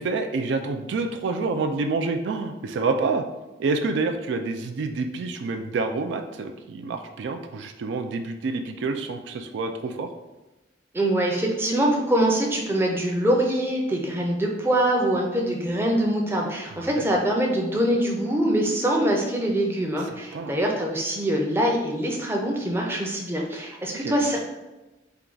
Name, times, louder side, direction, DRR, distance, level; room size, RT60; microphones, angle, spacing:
voice 1, 0.0-3.2 3.6-10.1 16.9-17.1 20.0-20.5 24.0-24.2, right 3 dB, 70° right, 6 dB, 0.3 m, -28 dB
voice 2, 10.9-24.4, right 1 dB, 10° right, -1 dB, 0.5 m, -24 dB
4.5 x 2.3 x 3.8 m, 1.1 s
head